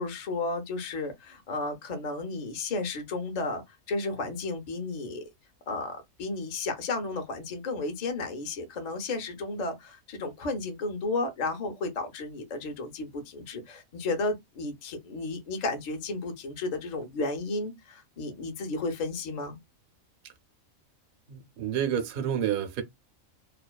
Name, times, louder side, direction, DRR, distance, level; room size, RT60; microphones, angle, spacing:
voice 1, 0.0-5.2 5.7-19.6, left 3 dB, 50° left, 0.5 m, -33 dB
voice 2, 21.3-22.8, right 9 dB, 60° right, 0.6 m, -29 dB
2.4 x 2.2 x 2.2 m
omnidirectional pair, 1.4 m